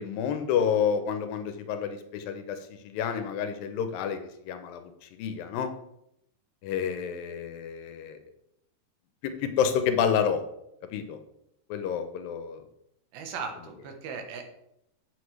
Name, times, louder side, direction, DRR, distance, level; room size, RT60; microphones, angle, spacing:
voice 1, 0.0-2.6 2.8-4.9 5.2-5.7 6.6-8.2 9.2-10.4 10.9-11.2 11.7-12.6, left 7 dB, 85° left, 8 dB, 2.5 m, -29 dB
voice 2, 13.1-14.4, right 5 dB, 85° right, 5 dB, 3.0 m, -37 dB
7.9 x 7.9 x 3.2 m, 0.79 s
omnidirectional pair, 4.2 m